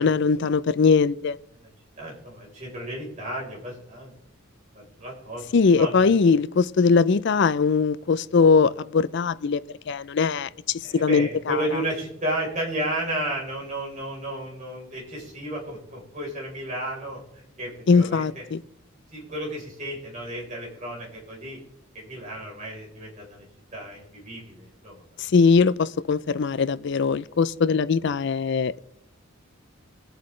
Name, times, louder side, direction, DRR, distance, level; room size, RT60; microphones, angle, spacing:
voice 1, 0.0-1.4 5.5-9.6 9.9-11.6 17.9-18.6 25.2-28.8, left 5 dB, 60° left, 0.4 m, -21 dB
voice 2, 2.0-4.1 4.7-5.4 5.8-6.1 10.8-18.4 19.1-21.6 21.9-23.4 23.7-25.0, right 1 dB, 35° right, 4.1 m, -33 dB
22.0 x 8.0 x 3.2 m
head